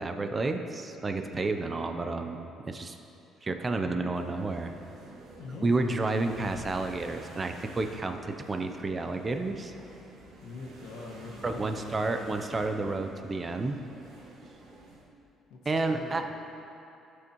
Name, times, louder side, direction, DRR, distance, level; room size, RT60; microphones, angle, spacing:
voice 1, 0.0-3.0 3.4-4.7 5.6-9.7 11.4-13.8 15.7-16.2, right 3 dB, 25° right, 6 dB, 0.5 m, -30 dB
sound 1, 4.1-15.0, right 2 dB, 65° right, 2.1 m, -50 dB
voice 2, 10.4-12.0 15.5-16.2, left 3 dB, 80° left, -2 dB, 1.7 m, -43 dB
16.0 x 6.3 x 3.0 m, 2.8 s
cardioid pair, 125°, 0 cm